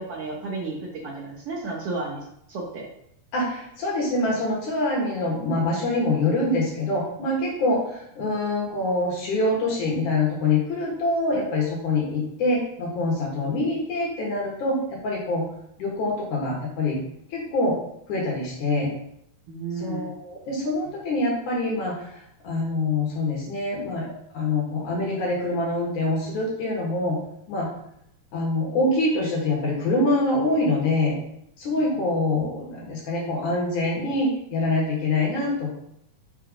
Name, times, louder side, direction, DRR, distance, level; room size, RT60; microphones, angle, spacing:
voice 1, 0.0-2.9 19.5-20.2 31.8-32.1, right 3 dB, 75° right, -2 dB, 1.3 m, -33 dB
voice 2, 3.3-14.8 15.0-15.4 15.8-17.0 17.3-17.8 18.1-18.9 19.7-27.2 27.5-27.7 28.3-31.2 31.6-35.7, left 2 dB, 65° left, -3 dB, 3.1 m, -25 dB
6.1 x 4.6 x 5.0 m, 0.74 s
omnidirectional pair, 3.9 m